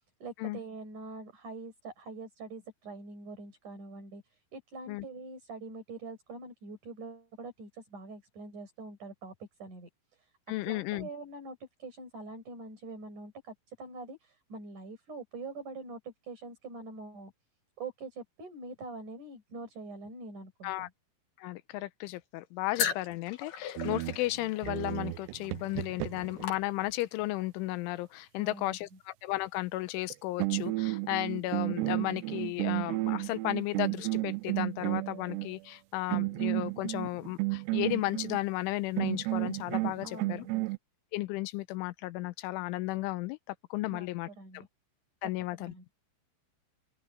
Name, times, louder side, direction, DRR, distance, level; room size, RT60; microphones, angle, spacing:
voice 1, 0.2-10.3 10.7-17.3 17.8-20.9 28.4-29.0 40.0-40.6 43.9-44.7 45.5-45.8, right 3 dB, 40° right, 7.3 m, -44 dB
voice 2, 10.5-11.1 20.6-20.9 21.4-40.5 41.1-43.4 43.7-44.3 44.5-44.6 45.2-45.7, left 18 dB, 85° left, 3.3 m, -34 dB
sound 1, 22.8-27.2, left 8 dB, 55° left, 4.3 m, -38 dB
sound 2, 23.8-26.4 30.0-30.1 30.4-35.5 36.1-38.4 39.0-40.8, right 22 dB, 85° right, 2.5 m, -32 dB
open air
omnidirectional pair, 5.5 m